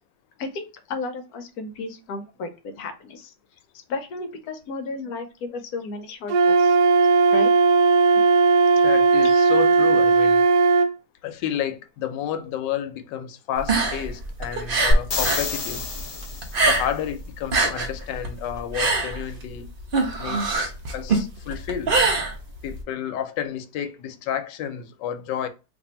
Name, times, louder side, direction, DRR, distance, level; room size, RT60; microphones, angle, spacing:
voice 1, 0.4-3.3 3.9-6.8 7.3-7.6 8.8-8.9, left 3 dB, 70° left, 1.0 m, -33 dB
Wind instrument woodwind instrument, 6.3-10.9, right 4 dB, 70° right, 0.9 m, -17 dB
voice 2, 8.8-10.4 11.2-15.9 16.6-19.7 20.2-21.9 22.6-25.5, left 9 dB, 85° left, 1.2 m, -31 dB
sound 1, 13.6-15.5 15.8-17.1 17.4-22.8, right 3 dB, 55° right, 0.6 m, -23 dB
sound 2, 14.9-16.7 20.6-20.7, left 1 dB, 50° left, 1.0 m, -25 dB
2.8 x 2.6 x 4.2 m
omnidirectional pair, 1.9 m